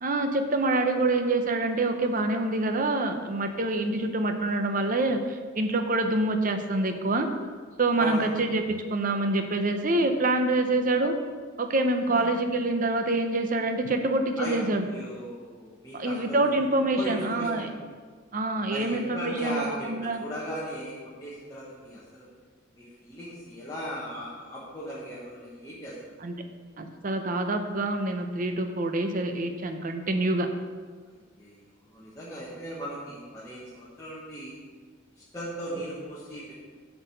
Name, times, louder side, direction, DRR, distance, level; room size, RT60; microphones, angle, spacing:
voice 1, 0.0-7.3 7.8-8.6 8.9-11.1 11.6-14.8 15.9-17.7 18.3-20.2 26.2-26.3 26.8-30.5, right 2 dB, 40° right, 6 dB, 0.7 m, -26 dB
voice 2, 8.0-8.3 12.1-12.3 14.4-17.7 18.7-22.3 22.7-26.2 31.2-34.6 35.2-36.5, equal, 15° left, -9 dB, 1.3 m, -37 dB
7.8 x 4.8 x 6.6 m, 1.5 s
head